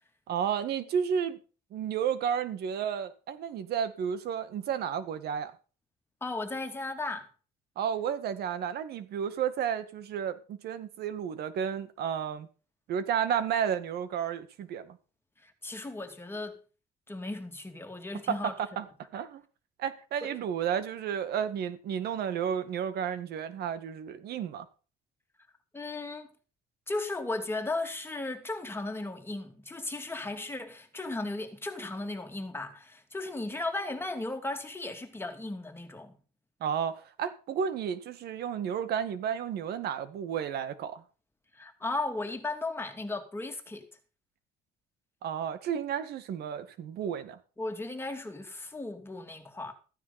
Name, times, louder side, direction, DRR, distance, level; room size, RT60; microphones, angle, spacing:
voice 1, 0.3-1.4 1.7-5.5 7.8-12.5 12.9-15.0 18.3-18.9 19.1-19.4 19.8-24.7 36.6-41.0 45.2-47.4, right 8 dB, 70° right, 2.0 m, -32 dB
voice 2, 6.2-7.3 15.4-16.6 17.1-18.6 20.2-20.3 25.7-26.3 26.9-36.1 41.5-43.9 47.6-49.7, left 2 dB, 15° left, 2.7 m, -36 dB
15.0 x 9.8 x 4.3 m
cardioid pair, 110°, 17 cm